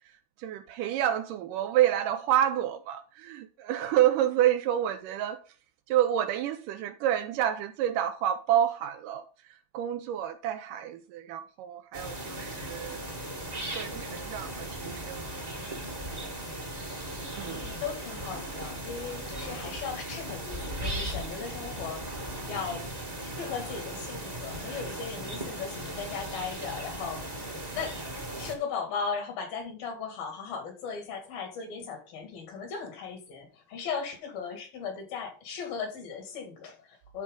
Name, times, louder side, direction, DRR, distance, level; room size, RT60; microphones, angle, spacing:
voice 1, 0.4-5.4 5.9-13.0 13.7-15.3 17.4-17.7, right 11 dB, 75° right, 2.1 m, -28 dB
sound 1, 11.9-28.5, right 1 dB, 25° right, 0.8 m, -37 dB
voice 2, 17.4-22.0 22.5-22.9 23.3-28.0 28.4-37.2, left 6 dB, 80° left, 4.1 m, -37 dB
12.5 x 4.7 x 3.8 m
omnidirectional pair, 4.1 m